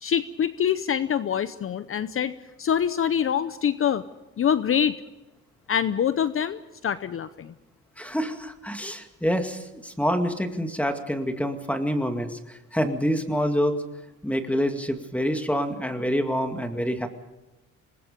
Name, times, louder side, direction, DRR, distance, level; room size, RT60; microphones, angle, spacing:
voice 1, 0.0-4.0 4.4-5.0 5.7-7.5, left 8 dB, 45° left, 13 dB, 0.8 m, -25 dB
voice 2, 8.0-13.8 14.2-17.1, equal, 5° left, 6 dB, 2.2 m, -27 dB
26.5 x 20.0 x 5.3 m, 1.0 s
cardioid pair, 90°, 30 cm